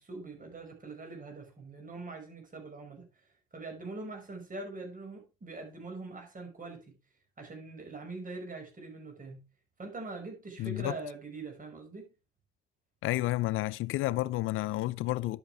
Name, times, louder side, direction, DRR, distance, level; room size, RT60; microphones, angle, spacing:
voice 1, 0.0-3.1 3.5-7.0 7.4-9.4 9.8-12.1, right 3 dB, 40° right, 5.8 m, -43 dB
voice 2, 10.6-10.9 13.0-15.4, left 17 dB, 75° left, 0.5 m, -31 dB
11.0 x 7.9 x 3.5 m
supercardioid pair, 55°, 21 cm